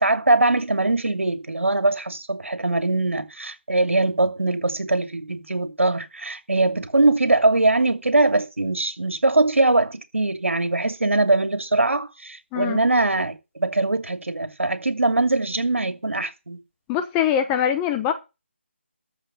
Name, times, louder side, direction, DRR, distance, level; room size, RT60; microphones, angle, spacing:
voice 1, 0.0-16.6, right 2 dB, 90° right, 2.7 m, -22 dB
voice 2, 16.9-18.1, left 9 dB, 10° left, 0.8 m, -22 dB
13.5 x 5.2 x 7.5 m
figure-of-eight pair, 165°, 7 cm